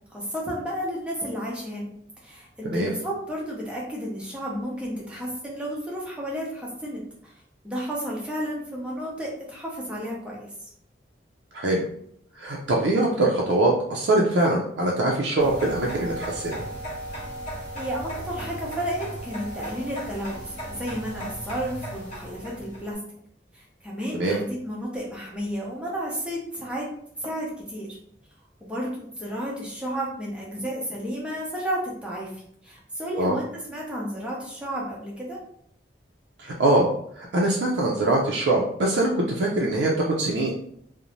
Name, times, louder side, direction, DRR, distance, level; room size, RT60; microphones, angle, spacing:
voice 1, 0.1-1.9 2.2-7.3 7.6-10.7 17.5-23.0 23.5-26.9 27.2-28.0 28.6-35.4, equal, 5° right, -4 dB, 0.6 m, -32 dB
voice 2, 12.4-16.6 24.2-24.4 33.2-33.3 36.4-36.9 37.2-40.5, right 2 dB, 85° right, -3 dB, 0.4 m, -23 dB
sound 1, 15.4-22.9, right 1 dB, 45° left, 0.9 m, -36 dB
2.5 x 2.0 x 2.9 m, 0.67 s
head